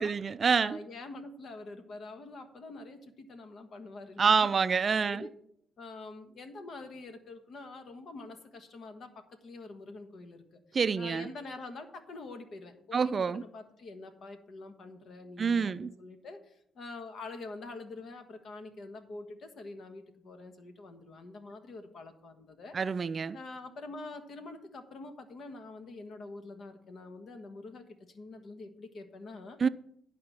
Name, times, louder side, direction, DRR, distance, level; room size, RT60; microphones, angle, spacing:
voice 1, 0.0-0.8 4.2-5.3 10.7-11.3 12.9-13.4 15.4-15.9 22.7-23.4 29.6-29.7, right 5 dB, 40° right, 0.3 m, -27 dB
voice 2, 0.6-5.3 5.8-22.8 23.3-29.6, left 3 dB, 60° left, 1.4 m, -46 dB
11.0 x 4.9 x 5.9 m
cardioid pair, 90°, 0 cm